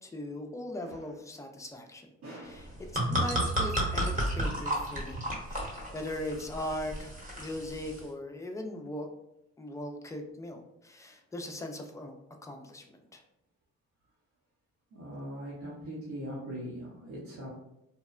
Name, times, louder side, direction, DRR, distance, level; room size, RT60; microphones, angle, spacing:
voice 1, 0.0-2.1 2.4-2.7 3.1-9.1 9.6-12.1 12.4-13.2, left 1 dB, 10° left, 3 dB, 0.3 m, -39 dB
voice 2, 2.2-2.8 14.9-17.5, equal, 70° right, -6 dB, 0.8 m, -41 dB
sound 1, 2.6-8.0, equal, 25° right, 0.9 m, -32 dB
2.8 x 2.1 x 2.3 m, 0.84 s
cardioid pair, 90°, 30 cm